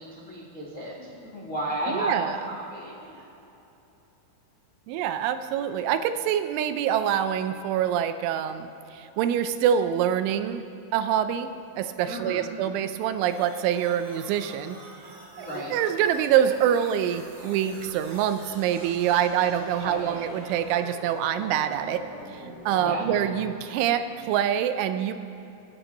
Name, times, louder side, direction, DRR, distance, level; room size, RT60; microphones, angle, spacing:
voice 1, 0.0-3.2 12.1-12.5 15.3-15.8 19.7-20.1 22.8-23.2, equal, 90° left, -4 dB, 0.7 m, -33 dB
voice 2, 1.9-2.4 4.9-10.6 10.9-11.5 11.8-14.8 15.4-22.0 22.3-25.1, right 9 dB, 85° right, 10 dB, 3.1 m, -25 dB
sound 1, 13.2-23.2, right 2 dB, 45° right, 4.0 m, -45 dB
28.0 x 9.9 x 4.0 m, 2.9 s
omnidirectional pair, 5.4 m